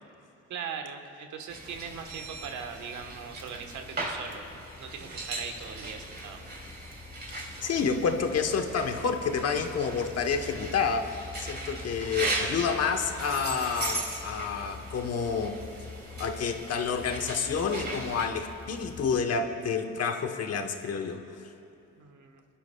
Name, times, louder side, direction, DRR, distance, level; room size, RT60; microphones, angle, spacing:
voice 1, 0.5-6.5 22.0-22.4, right 6 dB, 75° right, 5 dB, 1.3 m, -40 dB
sound 1, 1.5-18.3, right 2 dB, 35° right, 2.6 m, -38 dB
sound 2, 1.7-19.2, left 4 dB, 30° left, 1.1 m, -47 dB
voice 2, 7.6-15.6 16.2-21.2, left 5 dB, 55° left, 6 dB, 1.0 m, -29 dB
27.5 x 11.5 x 2.3 m, 2.8 s
cardioid pair, 90°, 30 cm